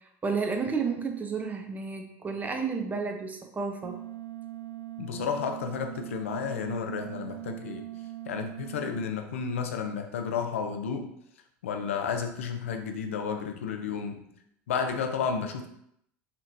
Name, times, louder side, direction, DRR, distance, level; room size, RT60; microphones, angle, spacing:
voice 1, 0.2-4.0, right 5 dB, 25° right, 4 dB, 0.7 m, -31 dB
sound 1, 3.8-9.0, right 15 dB, 80° right, 0.4 m, -41 dB
voice 2, 5.0-7.8 8.3-11.1 11.6-14.2 14.7-15.7, left 6 dB, 90° left, 5 dB, 0.5 m, -32 dB
4.2 x 3.0 x 2.6 m, 0.73 s
hypercardioid pair, 90°, 7 cm